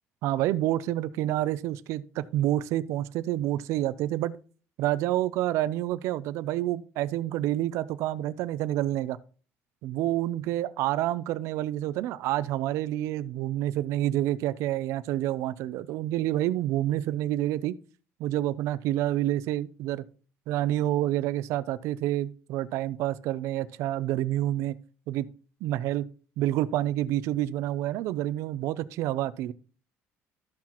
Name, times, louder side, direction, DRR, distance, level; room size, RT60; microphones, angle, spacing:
voice 1, 0.2-4.4 4.8-9.2 9.8-17.8 18.2-20.0 20.5-24.8 25.1-25.3 25.6-26.1 26.4-29.5, right 14 dB, 65° right, 0.5 m, -28 dB
13.5 x 5.8 x 3.0 m
cardioid pair, 165°, 5 cm